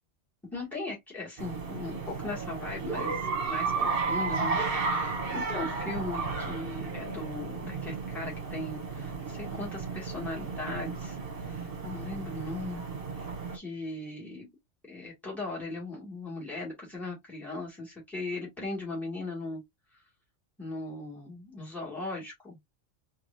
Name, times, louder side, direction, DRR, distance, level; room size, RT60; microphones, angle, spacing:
voice 1, 0.5-12.8 13.2-13.3 13.5-14.5 14.9-19.6 20.6-22.6, left 2 dB, ahead, 2.1 m, -38 dB
sound 1, 1.4-13.6, right 4 dB, 50° right, 1.2 m, -33 dB
4.7 x 2.7 x 2.6 m
omnidirectional pair, 1.3 m